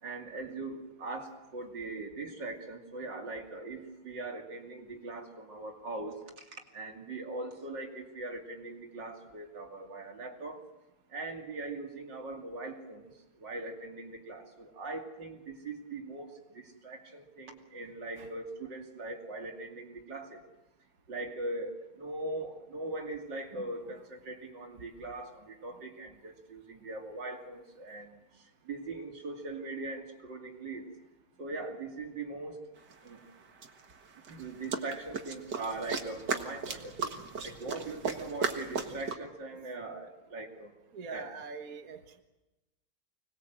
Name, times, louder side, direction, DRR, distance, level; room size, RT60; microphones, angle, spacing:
voice 1, 0.0-6.2 6.7-10.6 11.1-13.1 13.4-20.4 21.1-30.9 31.4-32.6 33.0-33.2 34.3-37.1 37.4-40.7 41.1-41.3, right 2 dB, 90° right, 2 dB, 3.3 m, -41 dB
sound 1, 32.9-33.0 33.6-39.1, right 5 dB, 70° right, 2.3 m, -36 dB
voice 2, 40.9-42.2, right 5 dB, 55° right, 5 dB, 1.9 m, -44 dB
25.0 x 20.5 x 7.8 m, 1.0 s
omnidirectional pair, 1.9 m